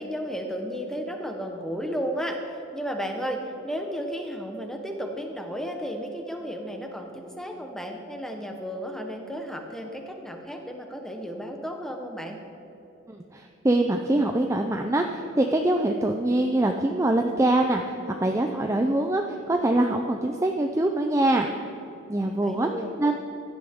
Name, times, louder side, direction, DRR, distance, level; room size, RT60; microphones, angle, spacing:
voice 1, 0.0-12.4 22.4-22.9, equal, ahead, 3 dB, 1.0 m, -33 dB
voice 2, 13.1-21.5 22.1-22.7 23.0-23.2, right 1 dB, 15° right, 3 dB, 0.4 m, -24 dB
16.0 x 12.0 x 3.6 m, 2.9 s
head